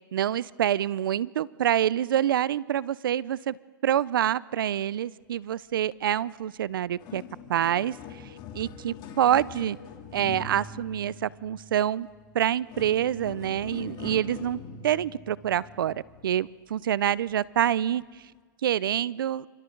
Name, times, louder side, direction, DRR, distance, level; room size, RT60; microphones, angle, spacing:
voice 1, 0.1-3.6 3.8-7.2 7.5-7.9 8.5-9.8 10.1-12.1 12.3-18.0 18.6-19.4, right 10 dB, 85° right, 21 dB, 0.6 m, -26 dB
sound 1, 6.5-6.6 6.9-16.6 17.2-17.4 18.1-18.2, left 5 dB, 45° left, 3.1 m, -43 dB
29.5 x 27.0 x 3.9 m, 1.5 s
hypercardioid pair, 115°, 11 cm